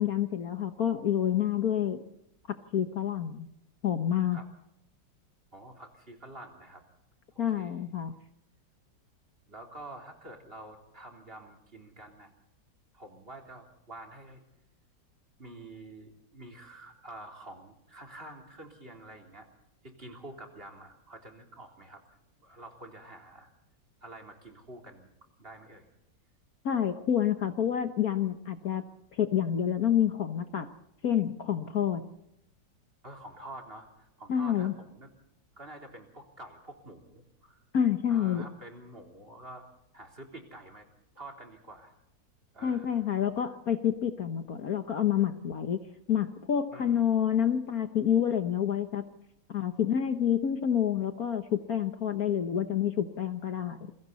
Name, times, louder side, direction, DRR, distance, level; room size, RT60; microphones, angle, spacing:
voice 1, 0.0-2.0 2.7-3.5 3.8-4.4 7.4-8.2 26.6-28.8 29.1-30.7 31.0-32.1 34.3-34.7 37.7-38.5 42.6-49.1 49.5-53.9, left 9 dB, 55° left, 8 dB, 1.5 m, -28 dB
voice 2, 5.5-6.8 7.3-7.9 9.5-12.3 12.9-14.4 15.4-19.5 19.8-22.0 22.4-23.5 24.0-25.1 25.4-25.9 33.0-35.1 35.6-37.6 38.1-39.7 39.9-40.9 41.1-41.9 42.5-43.1 46.7-47.1, right 2 dB, 30° right, 2 dB, 3.7 m, -48 dB
28.5 x 22.5 x 4.1 m, 0.80 s
omnidirectional pair, 2.0 m